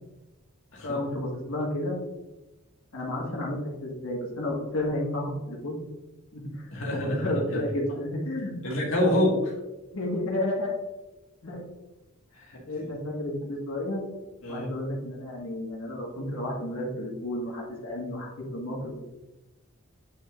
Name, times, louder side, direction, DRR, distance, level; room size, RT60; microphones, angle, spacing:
voice 1, 0.8-2.0 2.9-5.8 6.3-8.8 9.9-10.7 11.4-11.6 12.7-14.0 14.5-19.0, left 1 dB, 85° left, -4 dB, 1.6 m, -31 dB
voice 2, 6.7-7.6 8.6-9.5 12.3-12.6 14.4-14.7, left 1 dB, 70° left, -3 dB, 1.7 m, -27 dB
8.6 x 5.8 x 2.5 m, 1.1 s
head